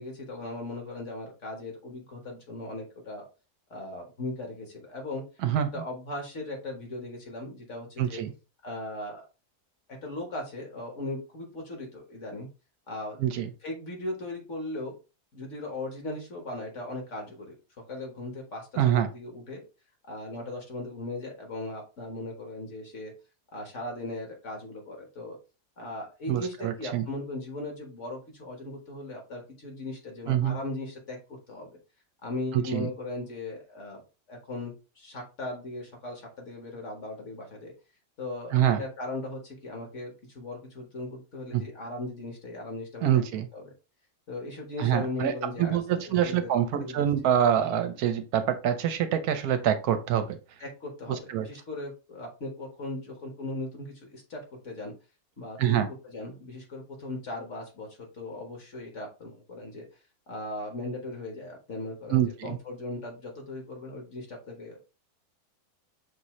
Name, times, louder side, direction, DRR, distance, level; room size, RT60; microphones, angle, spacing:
voice 1, 0.0-3.3 3.7-5.2 5.5-8.2 8.6-9.2 10.0-12.5 12.9-13.2 13.6-14.9 15.3-17.6 17.9-19.6 20.1-23.1 23.5-25.4 25.8-31.2 31.5-31.7 32.2-34.0 34.3-37.7 38.2-43.2 43.5-43.7 44.3-45.8 46.0-46.5 46.8-47.1 50.6-54.9 55.4-59.8 60.3-64.8, left 2 dB, 50° left, 2 dB, 1.6 m, -38 dB
voice 2, 8.0-8.3 13.2-13.5 18.8-19.1 26.3-27.0 30.3-30.6 32.5-32.9 38.5-38.8 41.5-41.6 43.0-43.5 44.8-45.3 45.6-50.4 51.1-51.5 55.6-55.9 62.1-62.6, right 10 dB, 75° right, 9 dB, 1.1 m, -25 dB
6.0 x 2.7 x 3.0 m, 0.31 s
omnidirectional pair, 1.7 m